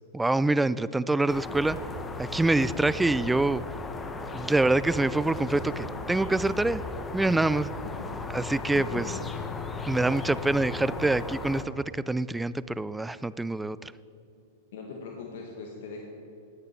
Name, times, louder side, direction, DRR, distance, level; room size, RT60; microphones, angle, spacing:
voice 1, 0.1-1.8 2.2-3.6 4.3-6.8 7.1-7.7 8.3-9.1 9.9-13.9, right 2 dB, 5° right, 17 dB, 0.3 m, -25 dB
sound 1, 1.3-11.6, left 3 dB, 15° left, 0.9 m, -36 dB
voice 2, 8.4-9.2 10.1-10.3 14.7-16.1, left 4 dB, 65° left, 0 dB, 1.5 m, -40 dB
18.0 x 6.8 x 4.4 m, 2.8 s
hypercardioid pair, 125°, 0 cm